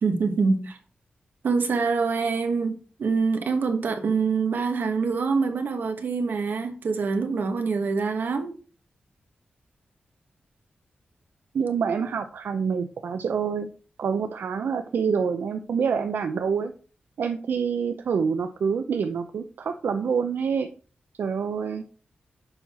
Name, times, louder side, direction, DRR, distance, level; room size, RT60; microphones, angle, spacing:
voice 1, 0.0-0.8 1.4-8.5, right 4 dB, 70° right, 1.3 m, -25 dB
voice 2, 11.5-13.7 14.0-16.7 17.2-20.7 21.2-21.8, right 6 dB, 90° right, 0.5 m, -26 dB
6.9 x 5.6 x 4.3 m
wide cardioid pair, 165°, 3 cm